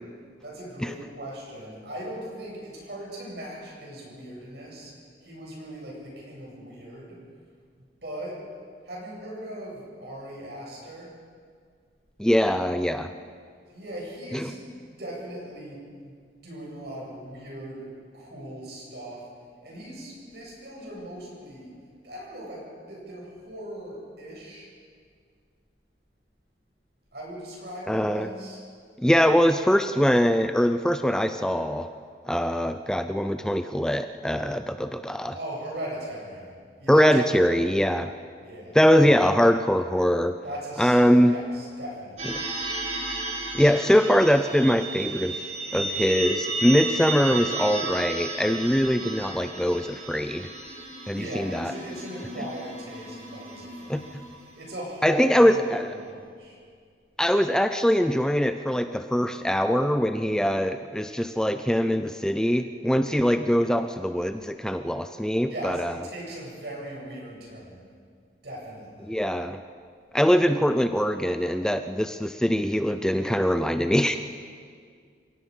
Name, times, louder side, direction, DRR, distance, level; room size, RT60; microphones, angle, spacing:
voice 1, 0.4-4.9 5.2-7.2 8.0-8.5 8.8-11.1 13.7-16.1 16.4-19.3 19.6-21.7 22.0-24.7 27.1-28.6 35.3-36.5 36.8-37.9 38.4-38.9 40.4-42.5 51.1-54.1 54.5-56.6 65.4-67.9 68.4-69.2, right 1 dB, 65° right, -3 dB, 7.6 m, -39 dB
voice 2, 12.2-13.1 14.3-14.5 27.9-28.3 29.0-31.9 32.3-35.3 36.9-38.1 38.7-40.4 40.8-41.3 42.3-42.4 43.5-50.5 51.1-51.7 53.9-54.0 55.0-55.9 57.2-65.9 69.0-69.6 70.1-74.2, equal, 5° left, 8 dB, 0.5 m, -22 dB
sound 1, 42.2-54.7, right 2 dB, 40° right, 4.2 m, -33 dB
28.5 x 17.5 x 5.5 m, 2.1 s
head